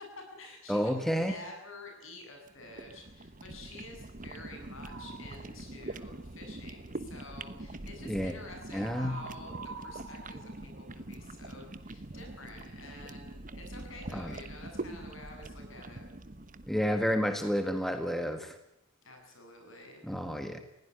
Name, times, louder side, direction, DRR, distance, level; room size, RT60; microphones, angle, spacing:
voice 1, 0.0-16.0 19.0-20.0, left 2 dB, 65° left, 4 dB, 7.8 m, -49 dB
voice 2, 0.7-1.3 8.0-8.3 8.7-9.1 14.1-14.3 16.7-18.5 20.0-20.6, equal, ahead, 7 dB, 1.6 m, -30 dB
sound 1, 2.4-17.7, right 2 dB, 40° right, 1.1 m, -44 dB
sound 2, 4.8-5.4 8.7-11.5, right 4 dB, 60° right, 3.0 m, -47 dB
21.0 x 16.5 x 9.7 m, 0.80 s
head